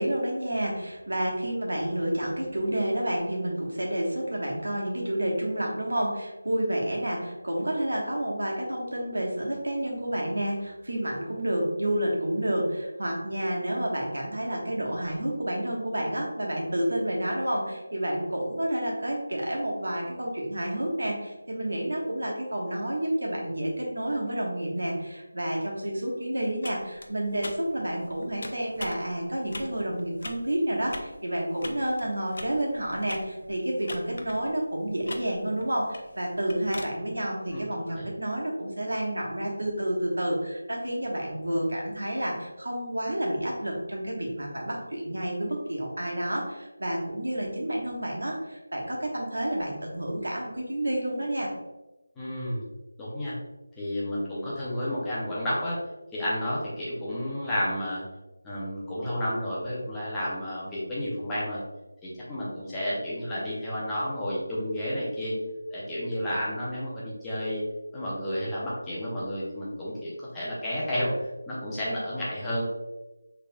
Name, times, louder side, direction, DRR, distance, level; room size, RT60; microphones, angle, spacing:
voice 1, 0.0-51.5, right 1 dB, 85° right, -2 dB, 1.3 m, -30 dB
sound 1, 26.6-36.9, left 2 dB, 50° left, 0.5 m, -43 dB
voice 2, 52.2-52.6 53.0-53.3 53.8-55.8 56.1-58.0 58.4-61.6 62.0-65.3 65.7-67.6 67.9-72.6, equal, 5° left, -9 dB, 0.6 m, -31 dB
4.4 x 3.3 x 2.3 m, 1.1 s
figure-of-eight pair, 175°, 0 cm